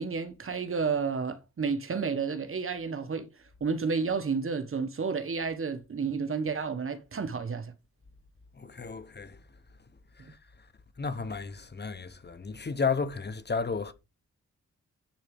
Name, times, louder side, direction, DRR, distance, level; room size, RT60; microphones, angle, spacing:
voice 1, 0.0-3.3 3.6-7.7 10.2-10.3, right 5 dB, 45° right, 1.3 m, -31 dB
voice 2, 8.5-9.5 10.1-10.7 11.0-13.9, left 5 dB, 35° left, 1.2 m, -33 dB
10.5 x 4.4 x 5.3 m
cardioid pair, 90°, 29 cm